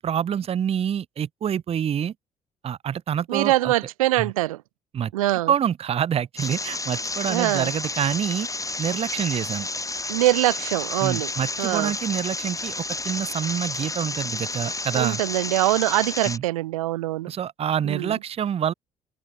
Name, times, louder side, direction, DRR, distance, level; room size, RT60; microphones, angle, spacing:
voice 1, 0.0-2.1 2.6-3.7 4.2-4.3 4.9-5.1 5.5-8.5 8.8-9.7 11.0-12.8 13.0-15.2 16.3-16.4 17.3-18.7, right 9 dB, 35° right, 0.4 m, -26 dB
voice 2, 3.3-4.6 5.1-5.5 7.3-7.7 10.1-11.3 11.6-11.9 14.9-17.3 17.8-18.2, right 17 dB, 90° right, 0.5 m, -23 dB
sound 1, 6.4-16.4, left 2 dB, 20° left, 2.8 m, -31 dB
hypercardioid pair, 50°, 17 cm